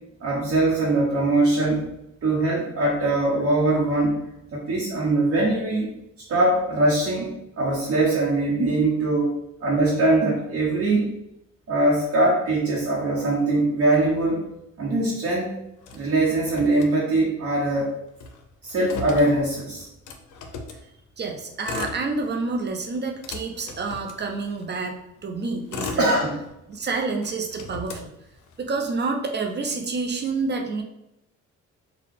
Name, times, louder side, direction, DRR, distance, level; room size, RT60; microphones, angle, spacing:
voice 1, 0.2-1.8 2.2-4.2 4.5-5.9 6.3-7.3 7.6-9.3 9.6-11.1 11.7-14.4 14.8-15.6 15.9-17.9 18.6-19.9 26.0-26.4, right 2 dB, 55° right, -6 dB, 1.1 m, -22 dB
Motor vehicle (road), 15.8-17.4 17.7-17.8 18.1-20.8 21.5-22.5 22.9-24.8 25.3-26.8 27.2-28.8, left 4 dB, 80° left, 0.6 m, -37 dB
voice 2, 21.2-26.1 26.7-28.1 28.6-30.8, right 3 dB, 35° right, 3 dB, 0.7 m, -28 dB
3.8 x 2.3 x 3.5 m, 0.84 s
cardioid pair, 90°, 30 cm